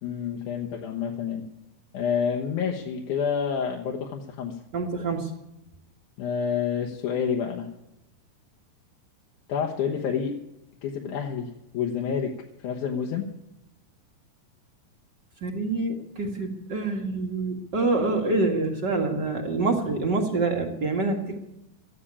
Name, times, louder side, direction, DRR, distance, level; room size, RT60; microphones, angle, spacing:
voice 1, 0.0-1.4 1.9-4.6 6.2-7.7 9.5-10.3 10.8-12.3 12.6-13.3, left 7 dB, 65° left, 2 dB, 2.4 m, -28 dB
voice 2, 4.7-5.3 15.4-21.4, right 3 dB, 45° right, 2 dB, 1.5 m, -26 dB
14.0 x 10.0 x 8.5 m, 0.88 s
omnidirectional pair, 4.2 m